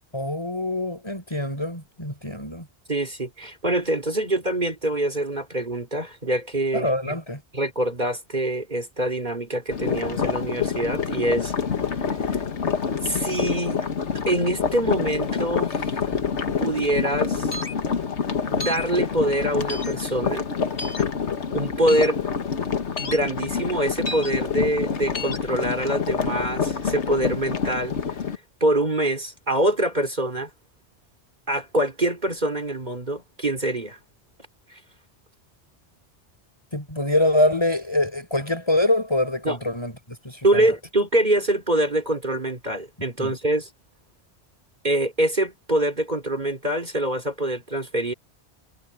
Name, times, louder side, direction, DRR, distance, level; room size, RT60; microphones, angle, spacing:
voice 1, 0.1-2.7 6.7-7.4 36.7-40.7 43.2-43.3, left 1 dB, 25° left, 5.4 m, -24 dB
voice 2, 2.9-7.2 7.5-11.5 12.1-12.2 13.0-13.8 14.3-16.0 16.6-17.5 18.5-20.5 21.5-22.2 23.0-28.0 28.6-30.5 31.5-34.0 34.7-34.8 39.4-39.6 40.4-43.7 44.8-48.1, right 1 dB, 40° right, 3.9 m, -25 dB
sound 1, 9.7-28.4, left 6 dB, 80° left, 1.7 m, -27 dB
sound 2, 17.5-17.7 18.6-18.9 19.7-19.9 20.8-21.0 21.9-22.1 23.0-23.2 24.1-24.3 25.1-25.4, left 2 dB, 55° left, 2.4 m, -32 dB
omnidirectional pair, 1.1 m